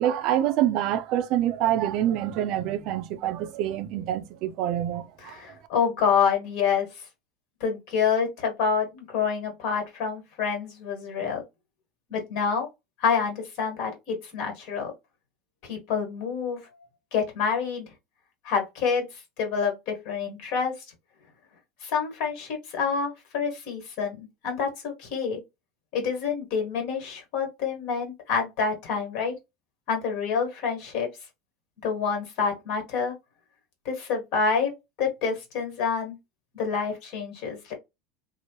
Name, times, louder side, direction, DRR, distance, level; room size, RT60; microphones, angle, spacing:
voice 1, 0.0-5.4, right 11 dB, 60° right, 0.4 m, -26 dB
voice 2, 5.2-6.9 7.6-11.4 12.1-12.7 13.0-14.9 15.6-16.6 17.1-17.9 18.4-20.8 21.8-25.4 25.9-29.3 29.9-31.1 31.8-33.1 33.8-34.7 35.0-36.2 36.5-37.7, left 6 dB, 60° left, 1.3 m, -27 dB
2.8 x 2.0 x 2.9 m
supercardioid pair, 125°, 0 cm